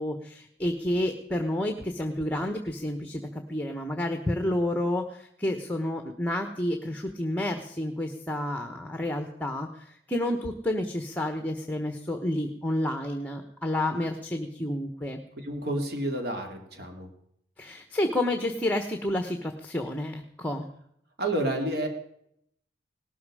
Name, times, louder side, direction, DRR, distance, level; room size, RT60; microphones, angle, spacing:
voice 1, 0.0-15.2 17.6-20.7, left 1 dB, 10° left, 6 dB, 1.1 m, -30 dB
voice 2, 15.4-17.1 21.2-21.9, right 1 dB, 60° right, 3 dB, 2.7 m, -30 dB
18.5 x 13.0 x 4.9 m, 0.73 s
head